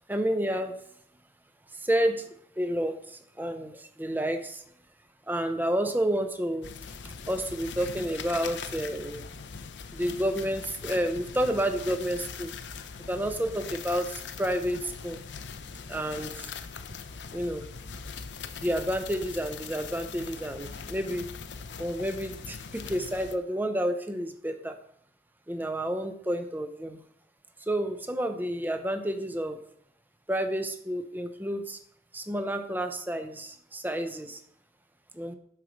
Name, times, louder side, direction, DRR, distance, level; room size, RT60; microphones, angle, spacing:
voice 1, 0.1-0.7 1.7-2.3 2.6-4.6 5.3-6.7 7.0-9.2 9.9-12.5 13.1-15.2 15.9-16.5 17.3-17.7 18.5-21.3 21.8-24.8 25.5-27.0 27.6-29.6 30.3-31.8 32.1-34.4 35.1-35.3, equal, 10° right, 7 dB, 0.7 m, -30 dB
sound 1, 6.6-23.4, left 5 dB, 80° left, 0.6 m, -41 dB
8.9 x 4.7 x 6.4 m, 0.65 s
head